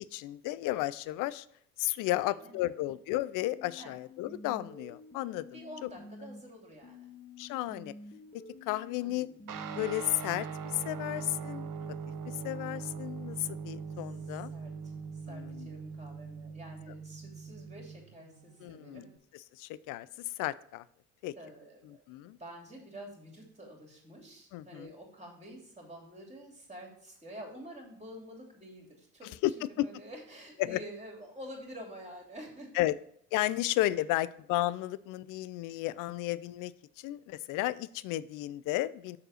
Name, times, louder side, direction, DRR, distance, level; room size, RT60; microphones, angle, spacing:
voice 1, 0.0-1.5 1.8-5.5 7.4-7.9 8.7-9.3 9.7-10.5 10.7-12.0 12.4-14.5 15.3-15.7 18.6-19.0 19.6-20.1 20.4-20.8 21.2-21.3 22.1-22.4 24.5-24.9 29.4-29.9 30.6-30.8 32.8-32.9 33.3-36.7 37.0-39.2, left 16 dB, 45° left, 18 dB, 0.4 m, -33 dB
voice 2, 2.1-2.8 3.8-3.9 5.5-7.1 9.0-9.3 14.2-15.0 15.3-19.1 21.4-32.7, equal, 15° right, 0 dB, 2.9 m, -48 dB
sound 1, 3.4-6.4 6.8-9.8, left 3 dB, 20° left, 1.4 m, -50 dB
Guitar, 9.5-19.2, right 6 dB, 45° right, 1.0 m, -41 dB
6.5 x 4.2 x 6.3 m, 0.66 s
hypercardioid pair, 60°, 47 cm